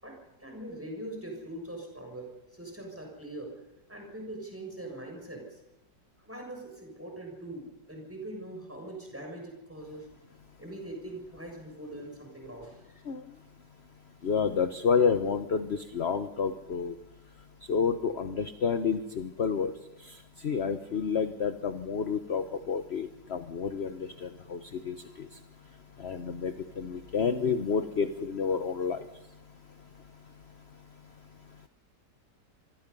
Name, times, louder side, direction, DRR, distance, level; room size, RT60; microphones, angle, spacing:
voice 1, 0.0-3.5 3.9-5.6 6.2-10.1 10.6-13.0, right 1 dB, 5° right, 1 dB, 6.6 m, -42 dB
voice 2, 14.2-16.9 17.7-19.7 20.4-23.9 24.2-24.6 24.9-25.0 26.0-29.0, left 6 dB, 40° left, 8 dB, 1.1 m, -29 dB
27.0 x 21.0 x 5.5 m, 0.97 s
omnidirectional pair, 1.9 m